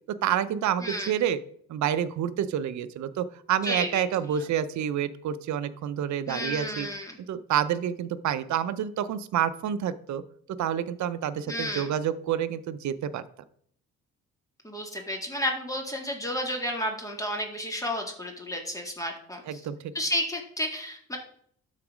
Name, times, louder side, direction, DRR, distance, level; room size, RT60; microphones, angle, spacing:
voice 1, 0.2-1.4 1.7-6.9 7.3-10.2 10.6-13.2 19.5-19.8, right 9 dB, 70° right, 13 dB, 0.7 m, -28 dB
voice 2, 0.8-1.1 3.6-4.4 6.3-7.2 11.5-11.9 14.6-19.7 19.9-21.2, left 1 dB, 10° left, 2 dB, 2.1 m, -32 dB
12.5 x 4.1 x 4.9 m, 0.62 s
cardioid pair, 90°, 30 cm